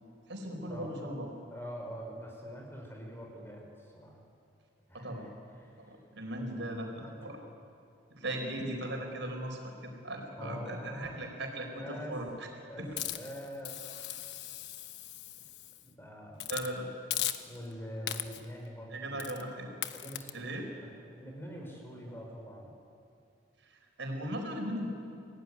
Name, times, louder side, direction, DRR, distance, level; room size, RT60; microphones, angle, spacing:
voice 1, 0.3-1.3 4.9-5.3 5.8-7.4 8.1-12.5 12.8-13.0 16.5-16.9 18.9-19.7 20.3-20.7 23.6-24.9, right 1 dB, 80° right, 2 dB, 4.9 m, -38 dB
voice 2, 1.5-4.1 4.9-5.3 5.6-5.9 6.4-7.3 10.4-11.2 11.7-12.2 12.7-14.0 15.8-16.4 17.5-19.2 19.9-22.7, equal, 15° left, 0 dB, 5.3 m, -45 dB
Hiss, 13.0-15.8 16.4-16.7 17.1-17.7 18.1-18.5 19.2-19.4 19.8-20.3, left 12 dB, 65° left, 1.1 m, -38 dB
28.0 x 18.0 x 9.8 m, 2.4 s
head